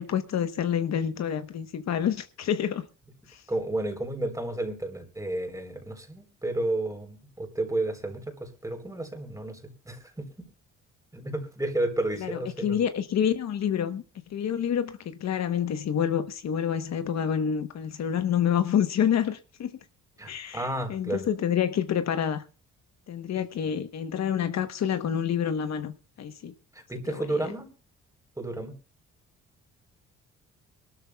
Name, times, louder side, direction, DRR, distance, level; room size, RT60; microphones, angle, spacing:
voice 1, 0.0-2.9 3.3-3.4 12.2-14.0 14.3-19.7 20.3-22.4 23.1-25.9 26.2-26.5 27.1-27.5, left 8 dB, 60° left, 1.1 m, -28 dB
voice 2, 3.5-10.5 11.1-12.8 20.2-21.2 26.7-27.7 28.4-28.7, right 2 dB, 10° right, 3.7 m, -32 dB
23.5 x 13.0 x 2.3 m
cardioid pair, 90°, 30 cm